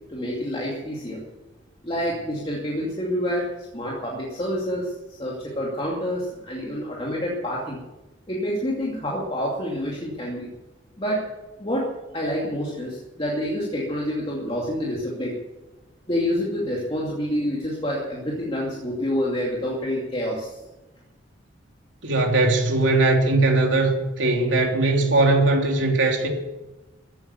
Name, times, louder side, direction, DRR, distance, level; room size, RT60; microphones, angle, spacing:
voice 1, 0.1-1.2 1.8-3.5 3.7-4.9 5.2-7.8 8.3-10.5 11.0-11.2 11.6-11.9 12.1-15.3 16.1-20.5, equal, 30° left, -3 dB, 2.5 m, -27 dB
voice 2, 22.0-26.3, right 2 dB, 70° right, 2 dB, 3.2 m, -20 dB
15.5 x 9.2 x 9.6 m, 1.0 s
head